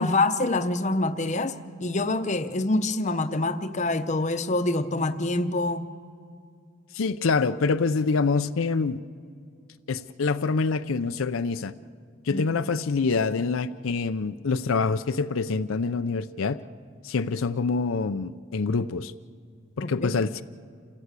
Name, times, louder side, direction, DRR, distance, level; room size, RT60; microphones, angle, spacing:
voice 1, 0.0-5.8 12.3-12.4 19.8-20.1, left 2 dB, 35° left, 9 dB, 0.8 m, -26 dB
voice 2, 6.9-9.0 9.9-11.7 12.2-16.6 17.0-19.1 19.8-20.4, left 4 dB, 75° left, 9 dB, 0.6 m, -26 dB
28.0 x 16.0 x 8.2 m, 2.3 s
head